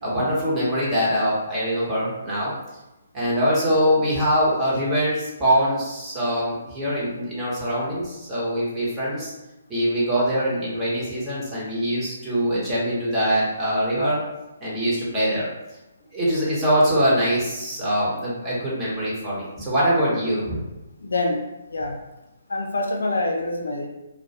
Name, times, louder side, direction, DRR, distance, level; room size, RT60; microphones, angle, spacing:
voice 1, 0.0-2.5 3.1-9.3 9.7-14.2 14.6-15.5 16.1-20.6, equal, 15° right, -8 dB, 0.9 m, -23 dB
voice 2, 21.0-21.4 21.7-21.9 22.5-23.9, left 2 dB, 70° left, 1 dB, 0.4 m, -25 dB
2.2 x 2.1 x 2.7 m, 0.98 s
figure-of-eight pair, 135°, 0 cm